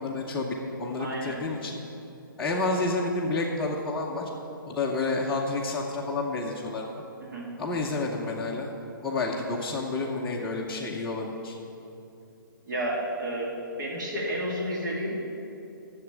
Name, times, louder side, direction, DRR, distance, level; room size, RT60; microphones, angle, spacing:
voice 1, 0.0-1.8 2.4-4.3 4.6-7.0 7.6-8.7 9.0-11.5, left 3 dB, 5° left, -7 dB, 0.8 m, -30 dB
voice 2, 1.0-1.4 7.3-7.5 12.7-13.5 13.8-15.2, equal, 60° right, -3 dB, 2.5 m, -31 dB
9.6 x 7.1 x 8.8 m, 2.8 s
hypercardioid pair, 160°, 12 cm